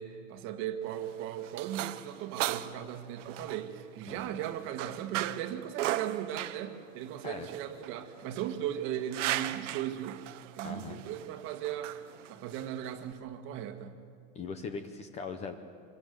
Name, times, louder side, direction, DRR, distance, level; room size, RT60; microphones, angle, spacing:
voice 1, 0.0-10.2 10.5-11.9 12.3-13.9, right 10 dB, 35° right, 8 dB, 1.6 m, -37 dB
sound 1, 0.8-13.1, right 14 dB, 90° right, 1.2 m, -38 dB
voice 2, 10.6-11.0 14.3-15.5, left 5 dB, 20° left, 9 dB, 0.8 m, -40 dB
25.0 x 21.5 x 9.3 m, 2.2 s
supercardioid pair, 175°, 36 cm